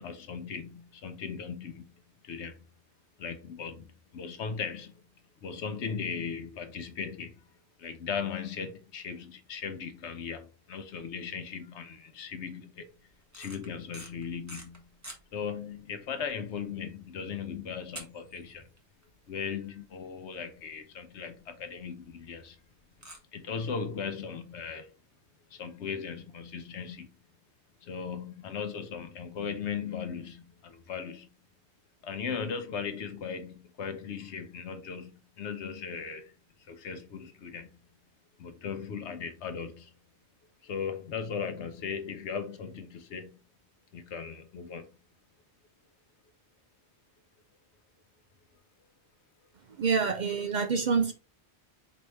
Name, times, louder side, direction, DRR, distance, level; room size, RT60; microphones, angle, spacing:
voice 1, 0.0-1.9 2.2-2.6 3.2-5.0 5.4-7.4 7.8-12.9 13.3-14.8 15.3-18.7 19.3-22.6 23.3-24.9 25.5-27.1 27.8-31.3 32.0-36.3 36.7-37.7 38.4-39.9 40.6-43.4 43.9-44.9, left 6 dB, 80° left, 1.0 m, -38 dB
sound 1, 13.2-15.2 15.8-15.9 16.1-16.3 16.7-16.8 17.9-18.8 19.0-19.1 19.6-19.7 20.0-20.1 20.3-20.4 21.6-21.7 23.0-23.2, right 1 dB, 15° right, 1.0 m, -45 dB
voice 2, 49.7-51.1, right 5 dB, 55° right, 0.6 m, -27 dB
4.6 x 3.1 x 3.1 m
omnidirectional pair, 1.1 m